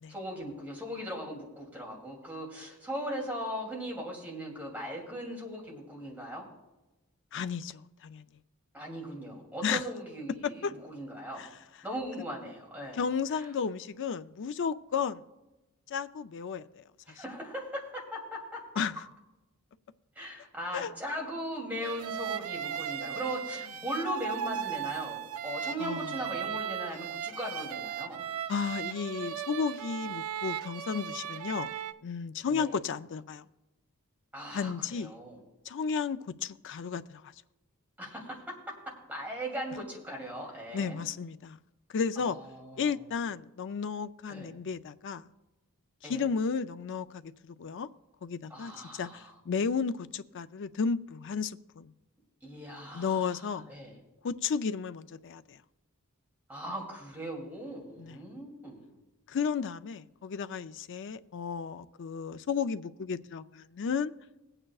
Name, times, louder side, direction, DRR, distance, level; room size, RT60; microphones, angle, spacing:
voice 1, 0.1-6.5 8.7-11.5 11.8-13.0 13.3-13.5 17.1-18.6 20.1-28.2 32.5-32.7 34.3-35.4 38.0-41.0 42.2-43.0 44.3-44.5 46.0-46.3 48.5-49.3 52.4-54.0 56.5-58.9, equal, 10° right, 2.7 m, -39 dB
voice 2, 7.3-8.2 9.6-9.8 10.6-10.7 11.4-11.5 12.9-15.2 15.9-16.8 18.8-18.9 20.7-20.9 25.8-26.1 28.5-31.7 32.0-33.5 34.5-35.1 35.7-37.2 40.7-41.6 41.9-42.4 42.8-45.3 46.0-47.9 48.2-51.9 52.9-53.7 54.2-55.6 58.0-58.2 59.3-64.1, left 6 dB, 55° left, 0.4 m, -33 dB
sound 1, 21.8-31.9, right 9 dB, 70° right, 0.5 m, -37 dB
20.5 x 8.9 x 2.4 m
head